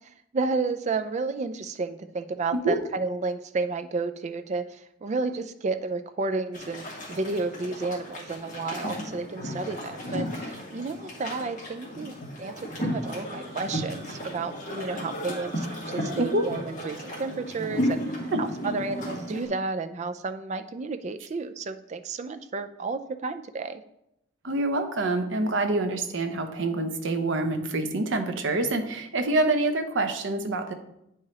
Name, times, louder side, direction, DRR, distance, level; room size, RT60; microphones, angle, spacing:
voice 1, 0.3-18.0 18.4-23.8, right 3 dB, 40° right, 9 dB, 0.4 m, -32 dB
sound 1, 6.5-19.5, equal, 45° left, 1.8 m, -34 dB
voice 2, 16.1-16.4 18.3-18.4 24.4-30.7, right 2 dB, 75° right, 6 dB, 0.8 m, -26 dB
9.2 x 4.7 x 2.9 m, 0.82 s
head